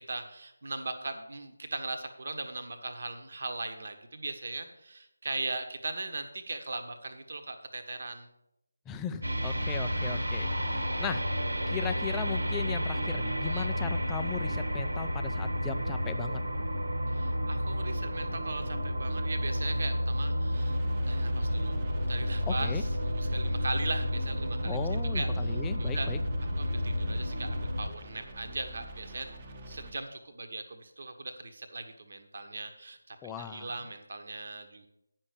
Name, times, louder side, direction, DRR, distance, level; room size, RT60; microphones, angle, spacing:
voice 1, 0.0-8.3 13.4-13.7 17.1-20.8 21.0-21.8 22.1-24.9 25.1-26.1 26.6-29.3 29.7-34.9, right 3 dB, 50° right, 7 dB, 1.2 m, -39 dB
voice 2, 8.9-11.2 11.7-16.4 22.5-22.8 24.6-26.2 33.2-33.7, left 7 dB, 10° left, 9 dB, 0.4 m, -37 dB
sound 1, 9.2-27.9, equal, 70° right, 1.4 m, -31 dB
sound 2, 20.5-29.9, right 1 dB, 25° right, 1.1 m, -46 dB
9.6 x 6.1 x 6.8 m, 0.82 s
figure-of-eight pair, 155°, 0 cm